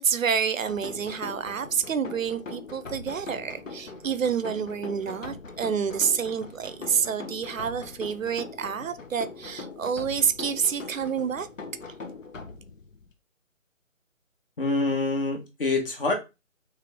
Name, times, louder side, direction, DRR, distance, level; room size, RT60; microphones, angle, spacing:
voice 1, 0.0-11.5, right 7 dB, 70° right, 0.6 m, -28 dB
sound 1, 0.7-13.1, left 4 dB, 65° left, 0.9 m, -41 dB
voice 2, 14.6-16.1, left 3 dB, 40° left, 1.1 m, -26 dB
3.4 x 3.3 x 3.4 m
figure-of-eight pair, 160°, 41 cm